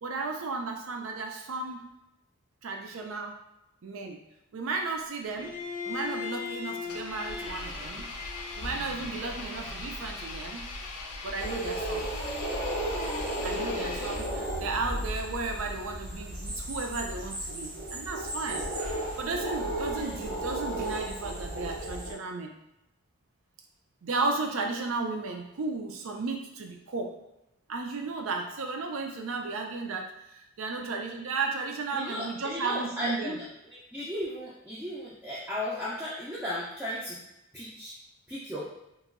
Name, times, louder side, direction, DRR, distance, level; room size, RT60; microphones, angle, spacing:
voice 1, 0.0-1.9 2.6-3.3 3.8-4.2 4.5-5.6 5.8-8.1 8.6-10.7 11.2-12.1 13.4-18.7 19.2-22.5 24.0-27.1 27.7-33.4, right 3 dB, 65° right, 3 dB, 0.4 m, -34 dB
Bowed string instrument, 5.4-10.3, left 5 dB, 25° left, 0.7 m, -39 dB
Engine, 6.8-14.6, left 2 dB, 85° left, 0.5 m, -40 dB
sound 1, 11.4-22.1, right 1 dB, 85° right, 0.8 m, -34 dB
voice 2, 31.9-33.4 33.9-37.2 37.5-37.9 38.3-38.7, left 1 dB, 5° right, -8 dB, 0.4 m, -35 dB
2.9 x 2.6 x 2.5 m, 0.88 s
head